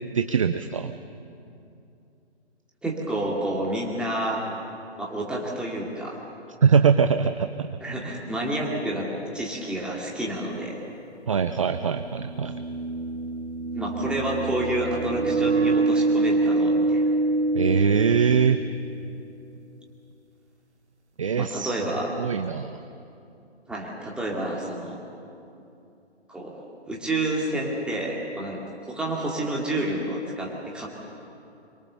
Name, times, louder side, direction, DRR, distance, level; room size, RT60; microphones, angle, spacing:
voice 1, 0.1-0.9 6.6-7.7 11.3-12.6 17.5-18.6 21.2-21.8 22.2-22.8, right 6 dB, 30° right, 9 dB, 0.5 m, -22 dB
voice 2, 2.8-4.5 5.0-6.2 7.8-9.1 9.3-10.8 13.7-17.0 21.4-22.1 23.7-25.0 26.3-26.5 26.9-28.6 28.9-30.9, right 1 dB, 5° right, -3 dB, 2.3 m, -29 dB
sound 1, 10.6-10.7 12.1-19.0, right 2 dB, 85° right, 0.9 m, -25 dB
25.5 x 23.5 x 6.9 m, 2.7 s
figure-of-eight pair, 135°, 34 cm